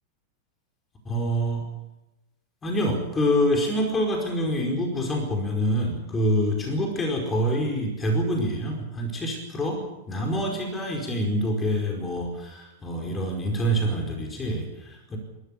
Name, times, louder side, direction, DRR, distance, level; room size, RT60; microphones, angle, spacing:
voice 1, 1.0-1.7 2.6-15.2, equal, 20° left, 2 dB, 4.9 m, -26 dB
29.0 x 14.0 x 8.4 m, 0.98 s
figure-of-eight pair, 90°, 0 cm